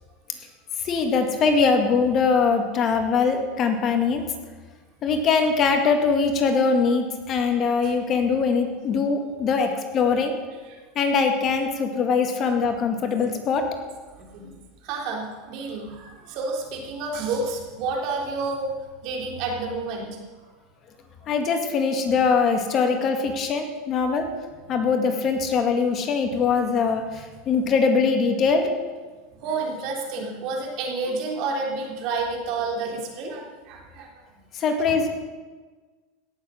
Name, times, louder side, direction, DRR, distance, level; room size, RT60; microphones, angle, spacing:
voice 1, 0.8-4.2 5.0-10.3 11.0-13.7 21.3-24.3 24.7-28.7 34.5-35.1, left 5 dB, 40° left, 5 dB, 2.0 m, -22 dB
voice 2, 14.2-14.5 14.8-18.8 19.0-20.2 29.3-34.1, right 3 dB, 55° right, 0 dB, 3.4 m, -30 dB
17.0 x 7.7 x 6.4 m, 1.4 s
supercardioid pair, 115°, 0 cm